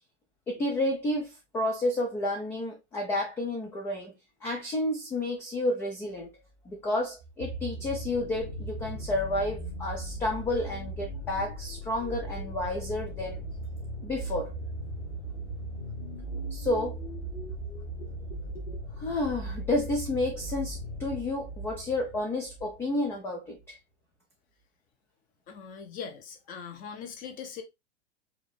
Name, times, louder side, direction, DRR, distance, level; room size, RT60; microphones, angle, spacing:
voice 1, 0.5-4.1 4.4-6.3 6.7-13.4 14.0-14.5 16.5-17.0 19.0-23.8, left 1 dB, 5° left, 0.4 m, -31 dB
sound 1, 7.2-22.8 23.6-23.7, right 1 dB, 75° left, 1.6 m, -38 dB
voice 2, 25.5-27.6, left 6 dB, 25° left, 0.9 m, -41 dB
4.8 x 2.6 x 3.4 m
figure-of-eight pair, 100°, 35 cm